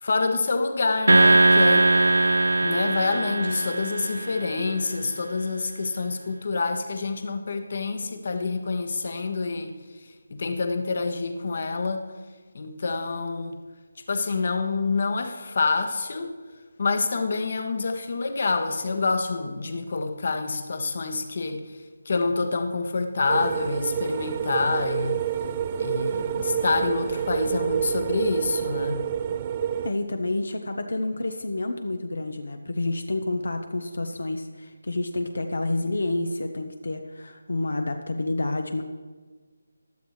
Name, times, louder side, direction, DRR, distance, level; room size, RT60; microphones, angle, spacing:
voice 1, 0.0-1.9 2.4-9.7 10.3-12.0 12.5-13.6 14.1-16.3 16.8-21.6 22.0-25.2 25.8-29.0, left 4 dB, 50° left, 7 dB, 1.2 m, -27 dB
sound 1, 1.1-4.6, right 2 dB, 90° right, 0.7 m, -20 dB
sound 2, 23.3-29.9, right 9 dB, 25° right, 0.3 m, -28 dB
voice 2, 29.8-38.8, left 2 dB, 75° left, 6 dB, 0.9 m, -29 dB
15.5 x 10.5 x 3.3 m, 1.4 s
figure-of-eight pair, 165°, 0 cm